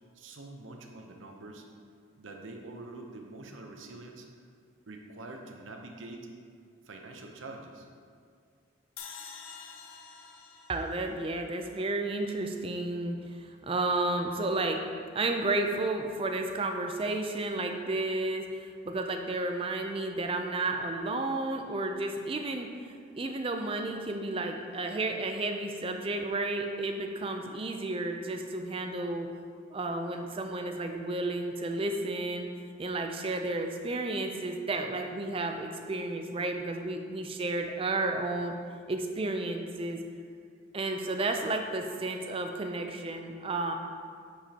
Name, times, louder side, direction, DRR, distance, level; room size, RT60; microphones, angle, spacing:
voice 1, 0.1-1.6 2.2-4.3 4.9-6.3 6.9-7.9, right 2 dB, 70° right, 3 dB, 0.7 m, -45 dB
sound 1, 9.0-12.2, left 6 dB, 80° left, 0.6 m, -48 dB
voice 2, 10.7-14.8 15.1-22.7 23.2-29.3 29.7-32.5 32.8-38.5 38.9-40.0 40.7-43.7, right 2 dB, 25° right, 4 dB, 0.4 m, -32 dB
8.6 x 5.0 x 2.8 m, 2.1 s
head